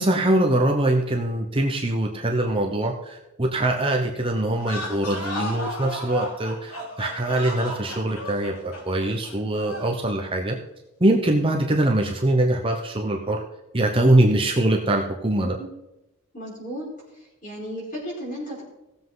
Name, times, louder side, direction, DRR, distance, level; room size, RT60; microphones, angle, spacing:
voice 1, 0.0-10.6 11.0-13.4 13.7-15.6, right 1 dB, 25° right, 1 dB, 0.9 m, -23 dB
sound 1, 4.5-10.0, left 1 dB, 85° left, 3.1 m, -34 dB
voice 2, 16.3-16.9 17.4-18.6, equal, 35° left, -4 dB, 4.9 m, -34 dB
17.5 x 7.5 x 3.9 m, 0.95 s
head